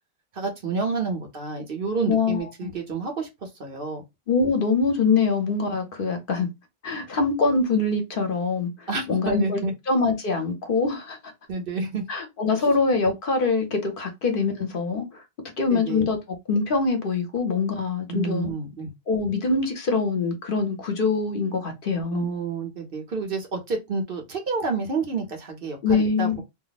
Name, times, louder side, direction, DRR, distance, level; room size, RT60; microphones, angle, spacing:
voice 1, 0.3-3.3 3.6-4.0 8.9-9.7 11.5-12.0 12.7-12.8 15.7-16.1 18.1-18.9 22.1-26.4, right 4 dB, 60° right, 1.1 m, -29 dB
voice 2, 2.1-2.7 4.3-6.5 6.8-9.6 9.9-11.2 12.1-15.2 15.6-18.5 19.1-22.3 25.8-26.4, left 4 dB, 60° left, 1.0 m, -24 dB
2.7 x 2.0 x 4.0 m
omnidirectional pair, 1.0 m